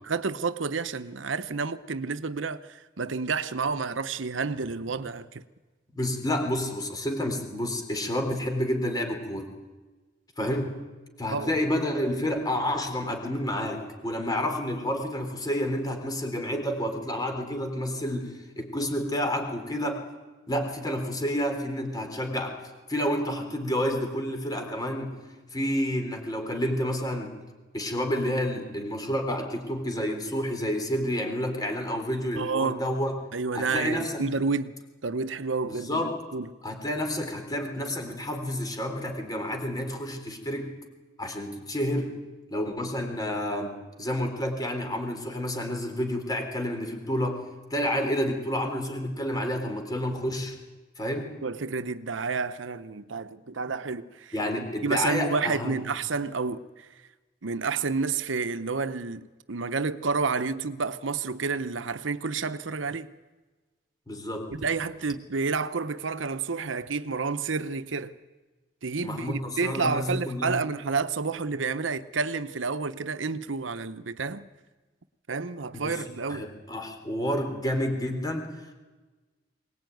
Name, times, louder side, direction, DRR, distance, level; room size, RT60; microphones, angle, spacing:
voice 1, 0.1-5.4 10.4-10.6 11.3-11.5 32.4-32.8 33.3-34.7 35.0-36.5 51.4-56.9 57.4-63.1 64.5-68.1 68.8-74.5 75.3-76.5, right 4 dB, 85° right, 0.9 m, -30 dB
voice 2, 5.9-9.5 10.4-10.7 11.2-20.1 20.5-22.5 22.9-25.1 25.5-27.3 27.7-33.1 33.5-34.2 35.6-36.2 36.6-40.7 41.2-42.2 42.5-47.4 47.7-50.5 51.0-51.3 54.3-55.8 64.1-64.5 69.0-70.6 75.7-76.0 76.3-78.5, equal, 20° left, 3.8 m, -29 dB
23.0 x 19.0 x 9.3 m
head